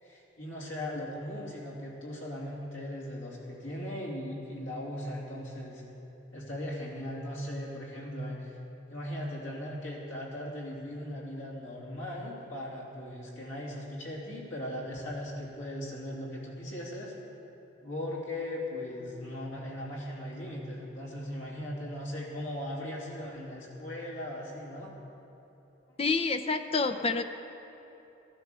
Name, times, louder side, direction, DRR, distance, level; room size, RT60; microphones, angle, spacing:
voice 1, 0.0-5.8 6.3-8.5 8.9-17.1 17.8-24.9, left 1 dB, 85° left, -3 dB, 2.9 m, -38 dB
voice 2, 26.0-27.2, left 4 dB, 30° left, 9 dB, 0.5 m, -28 dB
14.5 x 10.5 x 6.8 m, 3.0 s
head